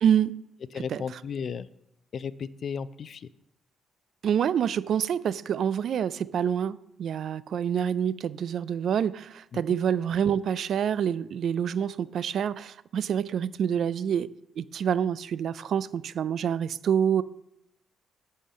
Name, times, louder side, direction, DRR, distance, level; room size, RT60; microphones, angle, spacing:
voice 1, 0.0-0.4 0.7-1.0 4.2-14.3 14.6-17.2, right 8 dB, 65° right, 0.3 m, -27 dB
voice 2, 0.7-1.7 2.1-3.3 9.5-9.6, left 6 dB, 50° left, 0.4 m, -34 dB
8.7 x 5.6 x 6.3 m
cardioid pair, 90°, 0 cm